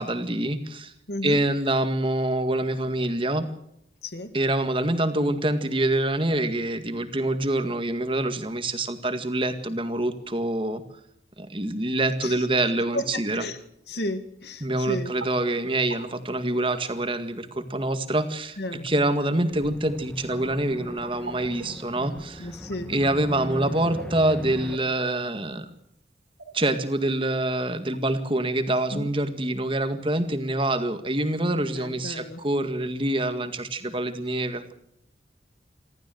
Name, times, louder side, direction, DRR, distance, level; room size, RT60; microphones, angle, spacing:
voice 1, 0.0-0.9 1.2-3.5 4.3-10.8 11.4-13.4 14.6-18.6 18.8-22.5 22.9-25.7 26.5-34.7, right 1 dB, 30° right, 9 dB, 1.9 m, -26 dB
voice 2, 1.1-1.4 4.0-4.3 12.2-12.5 12.9-13.6 13.9-15.1 18.6-19.1 22.4-22.9 28.9-29.1 31.7-32.4, left 1 dB, 70° left, 9 dB, 2.1 m, -33 dB
sound 1, 14.6-28.2, right 3 dB, 85° right, 4.7 m, -45 dB
sound 2, 19.5-24.8, equal, 5° left, 1.9 m, -38 dB
28.0 x 13.5 x 7.9 m, 0.75 s
head